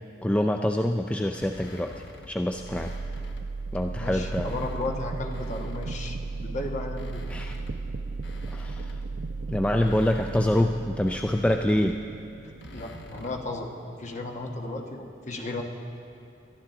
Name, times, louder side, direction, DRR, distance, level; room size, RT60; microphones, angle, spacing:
voice 1, 0.2-1.9 2.3-2.9 3.7-4.5 7.3-7.6 8.5-9.0 9.5-12.0, left 1 dB, 5° left, 4 dB, 0.3 m, -25 dB
sound 1, 1.3-3.5 3.9-6.4 6.8-13.6, left 1 dB, 70° left, 1.0 m, -47 dB
sound 2, 2.5-14.4, right 3 dB, 60° right, 0.6 m, -36 dB
voice 2, 4.0-7.2 12.7-15.6, left 2 dB, 40° left, 2 dB, 1.2 m, -34 dB
22.0 x 12.0 x 3.8 m, 2.5 s
head